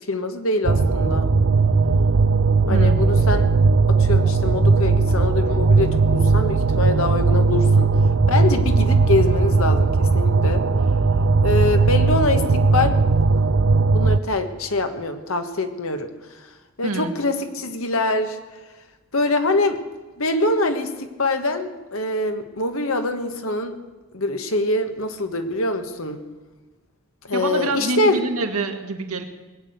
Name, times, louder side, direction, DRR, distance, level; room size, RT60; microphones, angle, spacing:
voice 1, 0.1-1.3 2.7-3.4 3.9-7.9 8.3-10.6 11.4-12.4 12.7-13.0 13.9-16.4 16.8-18.4 19.1-19.8 20.2-23.8 24.1-26.2 27.2-28.2, left 2 dB, 75° left, 7 dB, 1.5 m, -24 dB
sound 1, 0.6-14.2, right 4 dB, 70° right, 0.6 m, -18 dB
voice 2, 2.7-3.0 16.8-17.2 27.3-29.2, right 2 dB, 90° right, 5 dB, 1.8 m, -26 dB
20.0 x 8.6 x 7.9 m, 1.2 s
head